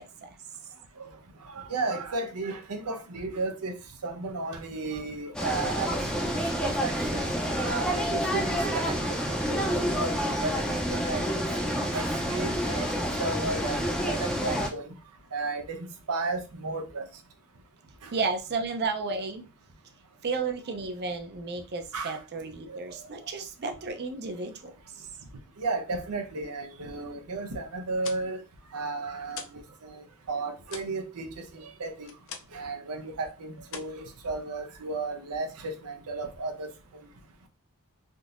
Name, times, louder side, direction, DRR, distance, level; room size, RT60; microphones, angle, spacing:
voice 1, 1.5-3.8 4.0-7.2 7.6-8.9 9.3-11.2 11.9-12.9 13.2-14.8 15.3-17.0 18.0-18.1 21.9-22.2 22.7-22.8 25.6-28.4 28.7-32.1 32.5-36.7, right 3 dB, 85° right, 0.7 m, -34 dB
sound 1, 5.3-14.7, equal, 5° left, 0.5 m, -28 dB
voice 2, 18.1-19.4 20.2-24.5, right 4 dB, 50° right, 0.6 m, -32 dB
sound 2, 27.8-29.7 30.0-32.7 33.0-33.3 33.6-34.7, left 6 dB, 60° left, 0.5 m, -44 dB
3.6 x 2.8 x 2.5 m
head